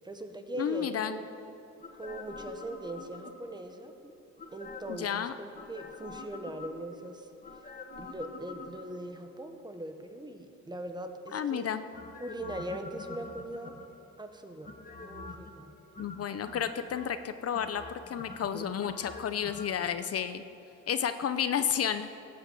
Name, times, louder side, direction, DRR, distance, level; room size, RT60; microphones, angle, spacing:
voice 1, 0.0-1.2 2.0-4.1 4.5-7.3 8.0-11.7 12.2-13.8 14.2-14.7 15.0-15.7 18.5-18.7, right 1 dB, 15° right, 6 dB, 1.0 m, -40 dB
voice 2, 0.6-1.2 4.9-5.3 11.3-11.9 16.0-20.4 20.9-22.1, left 8 dB, 50° left, 11 dB, 0.6 m, -31 dB
sound 1, 1.8-3.6 4.4-5.1 5.5-7.0 7.4-9.1 11.9-14.1 14.6-15.6 15.9-17.1 17.5-19.9 20.2-20.3, left 3 dB, 30° left, 1.3 m, -46 dB
18.0 x 8.5 x 7.6 m, 3.0 s
cardioid pair, 140°, 30 cm